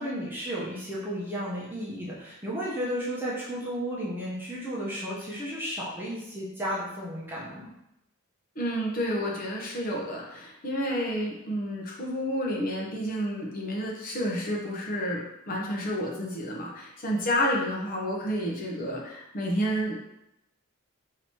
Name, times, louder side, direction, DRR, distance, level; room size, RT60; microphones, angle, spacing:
voice 1, 0.0-7.7, equal, 10° right, -7 dB, 0.9 m, -33 dB
voice 2, 8.5-20.2, equal, 40° left, -2 dB, 0.9 m, -30 dB
3.9 x 2.9 x 4.4 m, 0.86 s
head